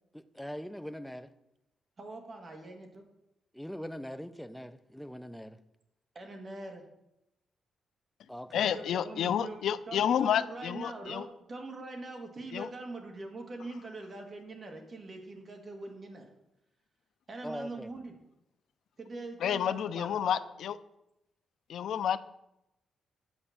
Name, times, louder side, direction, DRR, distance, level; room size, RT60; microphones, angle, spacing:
voice 1, 0.1-1.3 3.5-5.6 8.3-8.6 17.4-17.9, equal, ahead, 10 dB, 0.5 m, -41 dB
voice 2, 2.0-3.0 6.1-6.8 8.5-9.6 9.9-16.3 17.3-18.1 19.0-20.4, right 2 dB, 30° right, 3 dB, 1.7 m, -43 dB
voice 3, 8.5-11.3 12.5-12.7 19.4-20.7 21.7-22.2, left 9 dB, 70° left, 13 dB, 0.4 m, -30 dB
8.8 x 5.1 x 7.2 m, 0.86 s
cardioid pair, 150°, 0 cm